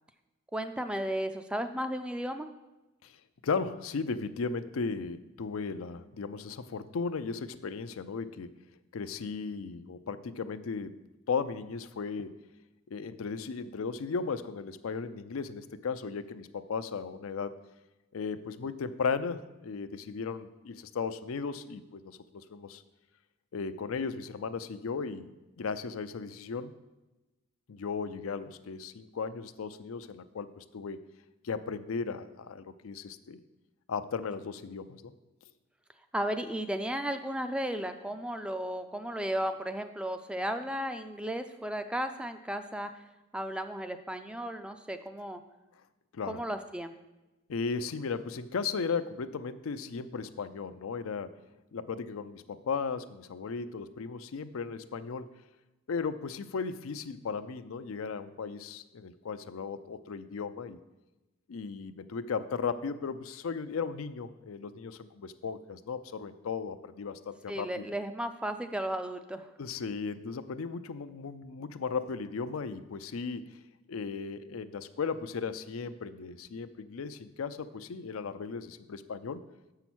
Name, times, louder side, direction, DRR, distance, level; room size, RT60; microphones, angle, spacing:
voice 1, 0.5-2.5 36.1-42.9 43.3-45.4 46.3-46.9 67.5-69.5, equal, 5° right, 8 dB, 0.4 m, -34 dB
voice 2, 3.4-8.6 8.9-11.0 11.3-12.3 12.9-17.5 18.1-22.8 23.5-26.7 27.7-31.0 31.4-33.4 33.9-35.1 46.1-46.4 47.5-51.3 51.7-55.3 55.9-60.8 61.5-67.9 69.6-73.6 73.9-79.4, left 5 dB, 80° left, 11 dB, 0.5 m, -36 dB
7.0 x 5.7 x 6.1 m, 1.1 s
head